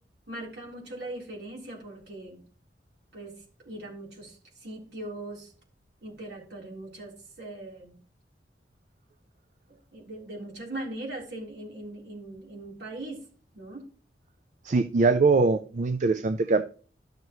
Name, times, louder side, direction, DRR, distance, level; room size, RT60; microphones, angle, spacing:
voice 1, 0.3-2.4 3.1-5.5 6.0-8.0 9.7-13.2 13.5-13.9, right 1 dB, 65° right, -2 dB, 3.8 m, -40 dB
voice 2, 14.6-16.6, right 3 dB, 45° right, 10 dB, 0.4 m, -22 dB
12.5 x 6.6 x 3.1 m, 0.42 s
head